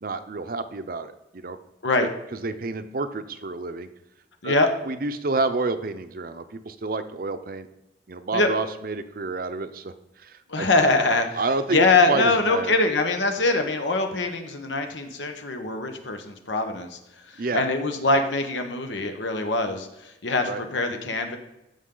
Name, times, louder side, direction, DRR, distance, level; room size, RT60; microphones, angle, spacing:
voice 1, 0.0-1.6 2.0-3.9 4.4-4.6 4.9-7.7 8.1-9.9 10.2-10.7 11.3-11.8 12.1-12.7 17.4-17.7 20.5-20.6, right 3 dB, 50° right, 10 dB, 0.6 m, -29 dB
voice 2, 10.5-11.4 11.7-17.0 17.3-21.4, left 3 dB, 85° left, 5 dB, 1.2 m, -23 dB
14.5 x 5.3 x 3.9 m, 0.92 s
head